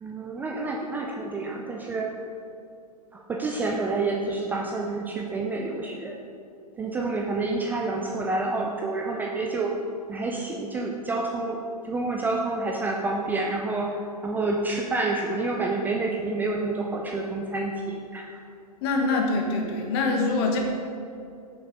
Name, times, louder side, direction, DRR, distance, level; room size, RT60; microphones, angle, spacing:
voice 1, 0.0-2.2 3.1-6.2 6.8-9.7 10.1-11.6 11.8-18.4, right 3 dB, 10° right, 0 dB, 0.4 m, -28 dB
voice 2, 18.8-20.6, left 3 dB, 40° left, 1 dB, 1.3 m, -24 dB
6.3 x 5.9 x 5.0 m, 2.5 s
figure-of-eight pair, 110°, 20 cm